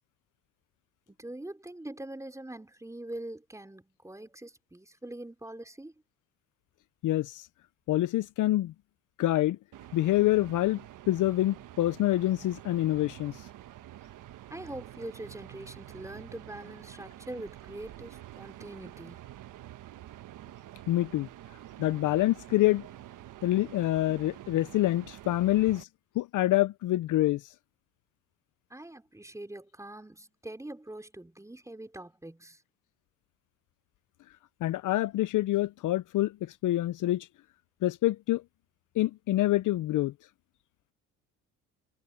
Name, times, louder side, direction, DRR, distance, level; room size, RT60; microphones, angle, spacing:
voice 1, 1.1-5.9 14.5-19.3 28.7-32.6, right 1 dB, 10° right, 4.5 m, -43 dB
voice 2, 7.0-7.5 7.9-8.7 9.2-9.6 9.9-10.8 11.1-13.5 20.9-21.3 21.8-22.9 23.4-25.9 26.2-27.4 34.6-37.3 37.8-38.4 39.0-40.1, left 15 dB, 60° left, 0.7 m, -26 dB
sound 1, 9.7-25.8, right 13 dB, 60° right, 1.4 m, -48 dB
supercardioid pair, 75°, 35 cm